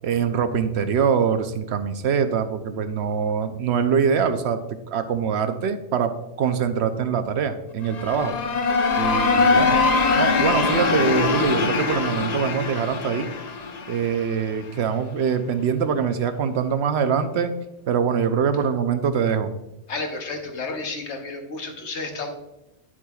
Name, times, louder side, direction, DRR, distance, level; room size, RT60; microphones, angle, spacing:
voice 1, 0.0-8.4 9.0-9.8 10.2-13.3 13.9-17.5 17.9-19.5, right 7 dB, 70° right, 9 dB, 0.9 m, -23 dB
sound 1, 7.8-14.6, left 4 dB, 45° left, 0.6 m, -22 dB
voice 2, 19.9-22.3, left 3 dB, 80° left, 4 dB, 1.3 m, -31 dB
9.7 x 7.4 x 2.3 m, 0.91 s
omnidirectional pair, 1.2 m